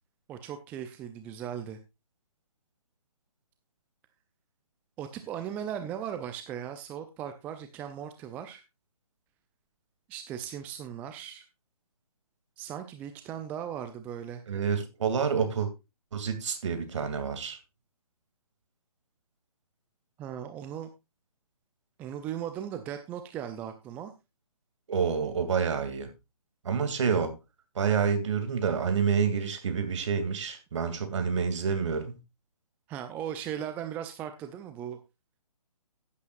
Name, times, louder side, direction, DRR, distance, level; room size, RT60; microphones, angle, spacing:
voice 1, 0.3-1.8 5.0-8.6 10.1-11.5 12.6-14.4 20.2-20.9 22.0-24.1 32.9-35.0, right 9 dB, 10° right, 0.4 m, -38 dB
voice 2, 14.5-15.7 16.1-17.6 24.9-26.1 26.6-27.3 27.8-32.2, right 6 dB, 50° right, 2.5 m, -28 dB
16.0 x 8.4 x 2.5 m
figure-of-eight pair, 140°, 19 cm